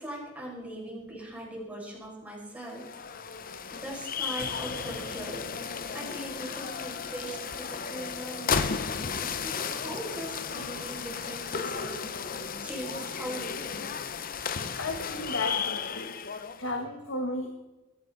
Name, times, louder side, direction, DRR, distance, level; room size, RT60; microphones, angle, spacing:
voice 1, 0.0-2.8 3.1-3.4 3.7-13.9, right 1 dB, 10° right, -4 dB, 6.4 m, -41 dB
sound 1, 2.6-16.7, left 6 dB, 45° left, 0.8 m, -34 dB
voice 2, 14.8-16.1 16.6-17.5, left 2 dB, 65° left, 4 dB, 1.7 m, -33 dB
23.5 x 14.0 x 4.2 m, 1.1 s
head